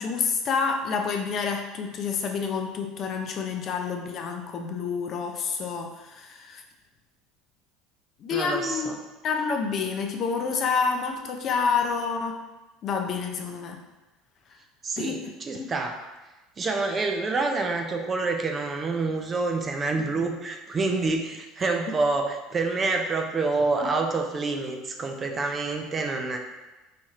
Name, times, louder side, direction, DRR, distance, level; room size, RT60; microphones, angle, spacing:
voice 1, 0.0-6.6 8.2-8.9 9.2-12.4 12.8-13.8 15.0-15.1 15.5-15.7 20.1-20.3, left 5 dB, 45° left, 4 dB, 0.4 m, -28 dB
voice 2, 8.3-9.0 14.8-16.0 16.6-26.4, right 3 dB, 30° right, 4 dB, 0.4 m, -27 dB
4.1 x 3.0 x 2.4 m, 1.1 s
supercardioid pair, 110°, 0 cm